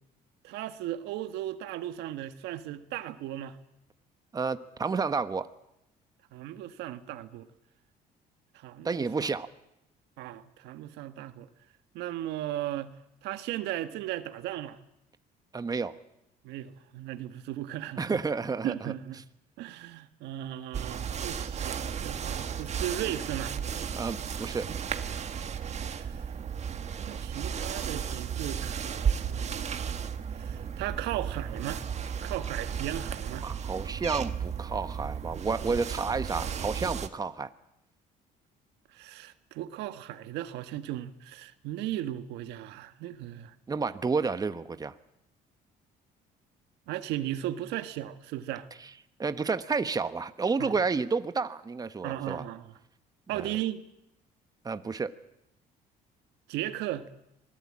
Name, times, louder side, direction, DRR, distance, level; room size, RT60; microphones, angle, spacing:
voice 1, 0.4-3.6 6.3-7.5 8.5-9.4 10.2-11.5 11.9-13.0 13.2-14.8 16.4-18.2 18.6-19.2 19.6-23.5 25.7-26.3 27.1-29.9 30.3-31.8 32.2-33.5 38.9-43.5 46.9-48.7 50.6-50.8 52.0-52.7 53.3-53.8 56.5-57.1, right 13 dB, 90° right, 10 dB, 1.5 m, -36 dB
voice 2, 4.3-5.5 8.8-9.5 15.5-15.9 18.0-18.9 24.0-24.7 33.4-37.5 43.7-44.9 49.2-52.4 53.3-53.4 54.6-55.1, right 4 dB, 20° right, 11 dB, 1.2 m, -30 dB
sound 1, 20.7-37.1, right 7 dB, 40° right, 1.6 m, -34 dB
26.5 x 19.5 x 8.7 m, 0.84 s
cardioid pair, 110°, 17 cm